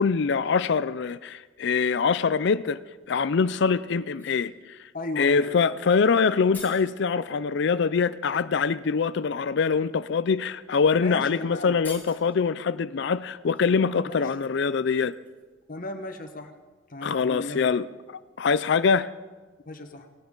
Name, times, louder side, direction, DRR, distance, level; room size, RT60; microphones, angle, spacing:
voice 1, 0.0-2.8 3.1-4.9 5.2-15.1 17.0-17.9 18.4-19.1, left 5 dB, 60° left, 0.4 m, -24 dB
sound 1, 4.0-4.5 6.0-6.1 6.3-6.9 8.4-8.5 9.1-9.3 10.2-10.3 10.6-10.8 11.1-11.2 11.7-12.4 13.5-15.6 15.8-16.0, left 4 dB, 10° left, 4.1 m, -47 dB
voice 2, 4.9-5.5 10.9-11.8 14.0-14.2 15.7-16.5 16.9-17.8 19.6-20.1, left 2 dB, 45° left, 1.3 m, -35 dB
18.5 x 18.5 x 3.9 m
head